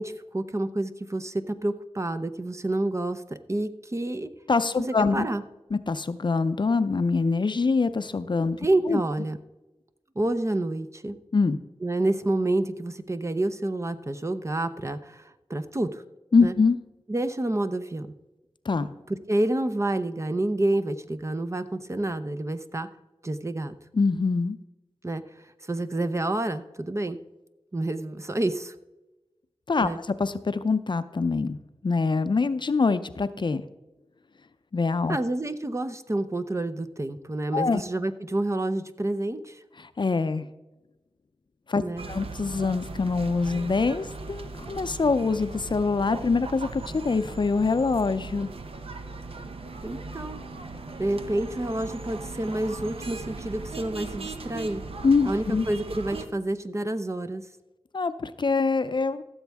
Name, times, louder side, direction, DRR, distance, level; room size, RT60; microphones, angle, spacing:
voice 1, 0.0-4.3 4.8-4.9 5.1-5.4 8.6-9.4 10.2-11.2 11.8-16.0 16.4-16.5 17.1-18.1 19.1-22.9 23.2-23.8 25.0-25.2 25.6-27.2 27.7-28.7 29.8-30.0 35.1-39.6 41.8-42.1 49.8-50.4 51.0-54.8 55.3-57.5, right 1 dB, 30° right, 11 dB, 0.7 m, -28 dB
voice 2, 4.5-5.3 5.7-8.6 8.9-9.0 11.3-11.6 16.3-16.8 18.7-18.9 23.9-24.6 29.7-29.9 30.2-31.6 31.8-33.6 34.7-35.2 37.5-37.8 39.8-40.5 41.7-48.5 55.0-55.7 57.9-59.2, left 4 dB, 50° left, 12 dB, 0.5 m, -24 dB
sound 1, 42.0-56.3, right 3 dB, 65° right, 0.9 m, -38 dB
15.0 x 7.1 x 3.5 m, 1.0 s
wide cardioid pair, 55°, 10 cm